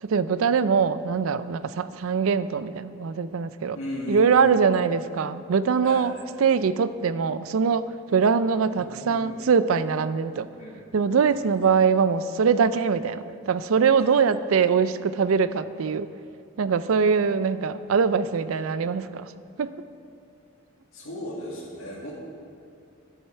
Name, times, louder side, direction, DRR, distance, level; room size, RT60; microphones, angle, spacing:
voice 1, 0.0-3.8 4.1-6.1 6.4-10.5 10.9-16.1 16.6-19.3 19.6-19.7, right 6 dB, 85° right, 14 dB, 0.4 m, -23 dB
voice 2, 3.7-4.7 5.8-6.3 8.8-9.4 10.6-10.8 11.2-11.4 14.0-14.1 20.9-22.1, left 1 dB, 80° left, -7 dB, 1.9 m, -36 dB
12.5 x 10.0 x 4.4 m, 2.7 s
head